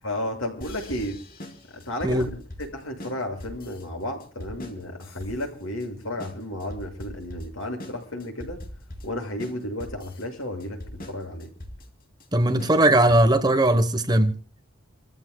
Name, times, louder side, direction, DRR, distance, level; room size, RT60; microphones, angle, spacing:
voice 1, 0.0-1.2 1.7-8.6 9.0-11.5, left 1 dB, 85° left, 6.7 m, -33 dB
sound 1, 0.6-13.5, left 1 dB, 45° left, 3.0 m, -42 dB
voice 2, 12.3-14.3, right 1 dB, 20° right, 1.1 m, -19 dB
29.0 x 14.5 x 2.3 m
head